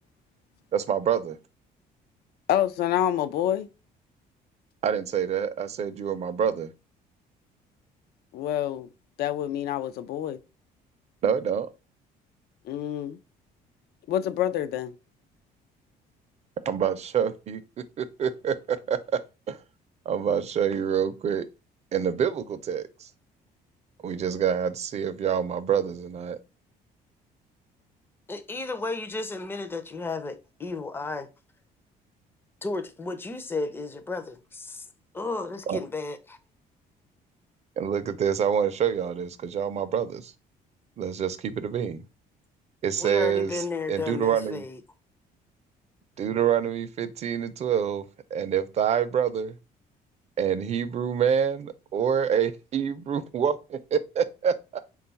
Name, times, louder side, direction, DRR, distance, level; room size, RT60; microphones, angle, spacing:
voice 1, 0.7-1.4 4.8-6.7 11.2-11.7 16.7-17.6 18.0-19.0 19.5-19.6 20.1-21.4 21.9-23.1 24.0-26.4 35.7-35.8 37.8-40.3 41.0-42.0 42.8-43.6 43.9-44.6 46.2-48.1 48.3-49.6 50.4-54.8, right 8 dB, 40° right, 0.4 m, -26 dB
voice 2, 2.5-3.7 8.3-8.9 9.2-10.4 12.7-13.2 14.1-14.9, left 11 dB, 70° left, 0.4 m, -27 dB
voice 3, 28.3-31.3 32.6-34.9 35.1-36.4 43.0-44.8, left 3 dB, 15° left, 0.4 m, -33 dB
3.7 x 2.3 x 4.0 m
cardioid pair, 110°, 17 cm